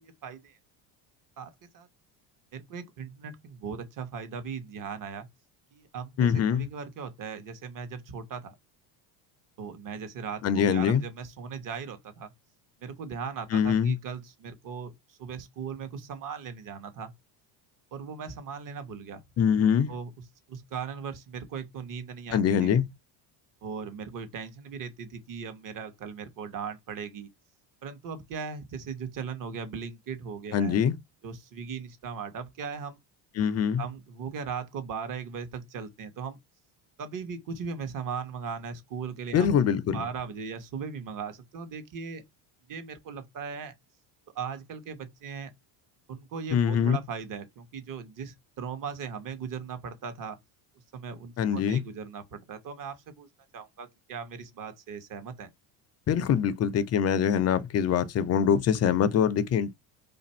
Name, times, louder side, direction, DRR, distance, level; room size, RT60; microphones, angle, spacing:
voice 1, 0.2-0.6 1.4-1.9 2.5-5.3 5.7-8.6 9.6-12.3 12.8-17.1 17.9-19.2 19.9-22.8 23.6-27.3 27.8-30.8 31.2-33.0 33.8-36.4 37.0-39.5 39.9-42.2 42.7-43.7 44.3-45.5 46.1-50.4 50.9-53.3 53.5-55.5, right 6 dB, 40° right, 1.0 m, -38 dB
voice 2, 6.2-6.7 10.4-11.0 13.5-14.0 19.4-19.9 22.3-22.8 30.5-30.9 33.4-33.8 39.3-40.0 46.5-47.0 51.4-51.8 56.1-59.7, left 8 dB, 35° left, 0.5 m, -24 dB
2.5 x 2.5 x 4.2 m
supercardioid pair, 100°, 49 cm